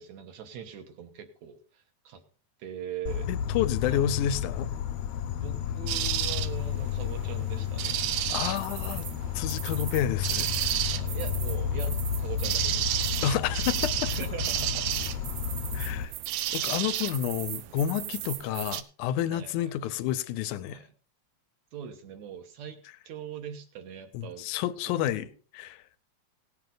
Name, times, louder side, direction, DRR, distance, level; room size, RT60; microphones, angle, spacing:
voice 1, 0.0-2.2 2.6-3.3 3.9-4.1 5.4-8.1 10.8-12.9 14.0-14.9 19.2-19.7 20.7-20.9 21.7-24.5 24.9-25.3, right 8 dB, 70° right, 2.5 m, -41 dB
Insect, 3.1-16.1, left 8 dB, 75° left, 1.8 m, -32 dB
voice 2, 3.3-4.7 8.3-9.1 9.4-10.8 13.2-14.1 15.7-16.1 16.5-20.8 24.1-25.3 25.5-25.8, left 10 dB, 90° left, 2.1 m, -30 dB
sound 1, 5.9-18.8, right 14 dB, 90° right, 2.1 m, -32 dB
17.5 x 7.4 x 3.9 m
omnidirectional pair, 3.4 m